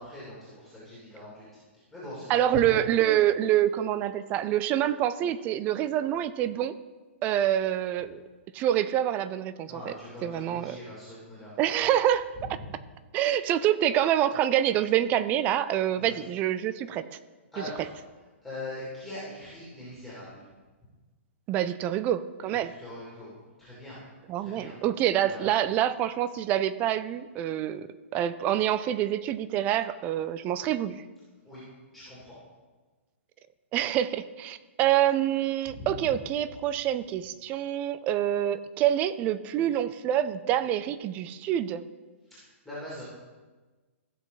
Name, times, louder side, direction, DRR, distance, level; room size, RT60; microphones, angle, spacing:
voice 1, 0.0-1.4 1.9-2.5 9.7-11.5 16.0-16.1 17.5-17.9 18.4-20.4 22.8-23.3 23.6-24.0 24.4-24.7 25.3-25.6 31.4-31.6 31.9-32.3 35.7-35.9 42.3-42.4 42.6-43.0, left 1 dB, ahead, -9 dB, 2.9 m, -42 dB
voice 2, 2.3-6.7 7.2-8.2 8.5-9.9 10.2-10.8 11.6-12.6 13.1-17.0 17.8-17.9 21.5-22.7 24.3-27.9 28.1-31.0 33.7-41.8, right 11 dB, 20° right, 15 dB, 0.4 m, -26 dB
15.5 x 6.2 x 4.1 m, 1.3 s
hypercardioid pair, 155°, 7 cm